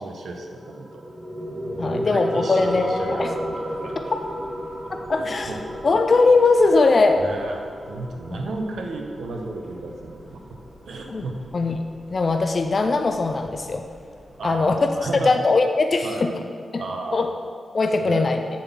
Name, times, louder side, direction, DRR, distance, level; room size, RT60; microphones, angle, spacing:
voice 1, 0.0-1.1 1.7-3.9 5.1-5.6 7.2-10.4 10.8-11.4 14.4-15.3 16.0-16.2 16.8-17.3 18.0-18.3, right 3 dB, 90° right, 1 dB, 0.9 m, -33 dB
sound 1, 0.5-11.6, equal, 35° right, 1.4 m, -33 dB
voice 2, 1.8-3.3 5.1-7.2 8.3-8.4 11.1-11.3 11.5-11.8 12.1-13.9 14.4-14.9 15.2-16.3 16.7-16.8 17.1-17.3 17.7-18.4, left 3 dB, 40° left, 5 dB, 0.4 m, -20 dB
sound 2, 2.6-15.3, equal, ahead, 1.4 m, -50 dB
7.7 x 4.1 x 6.8 m, 2.1 s
wide cardioid pair, 160°, 0 cm